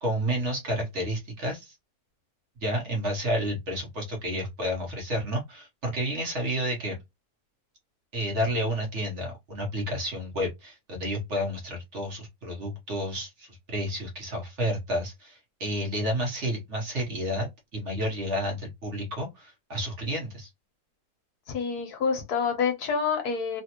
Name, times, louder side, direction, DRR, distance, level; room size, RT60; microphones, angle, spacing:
voice 1, 0.0-1.8 2.6-7.0 8.1-20.5, equal, 50° right, 1.1 m, -30 dB
voice 2, 21.5-23.6, left 5 dB, 70° left, 1.4 m, -27 dB
3.3 x 2.5 x 2.8 m
omnidirectional pair, 1.8 m